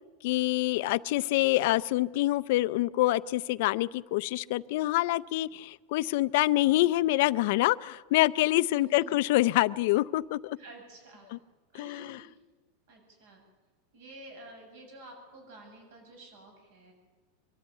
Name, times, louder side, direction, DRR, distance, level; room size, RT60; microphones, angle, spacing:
voice 1, 0.2-10.6 11.7-12.2, left 17 dB, 55° left, 16 dB, 0.5 m, -26 dB
voice 2, 8.7-9.2 10.6-11.4 11.7-12.3 12.9-13.4 13.9-16.9, right 2 dB, 65° right, 3 dB, 7.9 m, -50 dB
23.0 x 13.5 x 9.0 m, 1.4 s
supercardioid pair, 165°, 0 cm